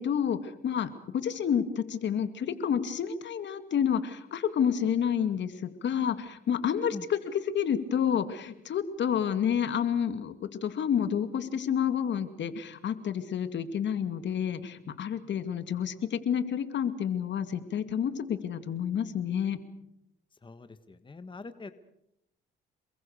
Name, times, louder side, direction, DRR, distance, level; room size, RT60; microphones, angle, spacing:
voice 1, 0.0-19.6, left 8 dB, 65° left, 11 dB, 2.4 m, -29 dB
voice 2, 20.4-21.7, left 3 dB, 25° left, 11 dB, 1.6 m, -43 dB
28.5 x 22.0 x 6.7 m, 0.81 s
cardioid pair, 90°, 20 cm